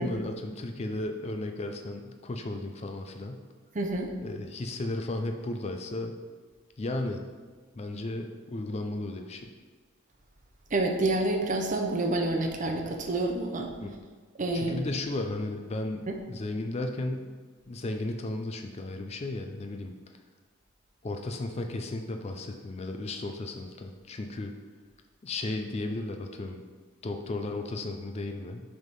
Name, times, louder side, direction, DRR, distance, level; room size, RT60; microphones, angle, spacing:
voice 1, 0.0-3.4 4.2-6.1 6.8-7.2 7.7-9.5 13.8-13.9 14.5-17.3 17.7-19.9 21.0-24.5 25.2-26.6 27.0-28.6, left 2 dB, 30° left, 5 dB, 0.4 m, -34 dB
voice 2, 3.7-4.1 10.7-13.7 14.4-14.8 16.1-16.2, right 2 dB, 35° right, 3 dB, 0.6 m, -28 dB
6.4 x 3.6 x 5.3 m, 1.5 s
head